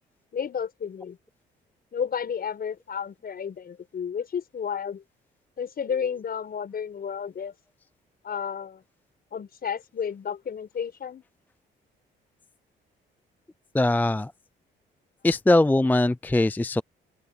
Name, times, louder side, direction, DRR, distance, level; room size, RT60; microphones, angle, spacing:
voice 1, 0.3-1.2 1.9-5.0 5.6-7.6 8.2-8.8 9.3-11.2, left 7 dB, 50° left, 5.4 m, -32 dB
voice 2, 13.7-14.3 15.2-16.8, left 2 dB, 10° left, 0.5 m, -21 dB
open air
cardioid pair, 90°, 20 cm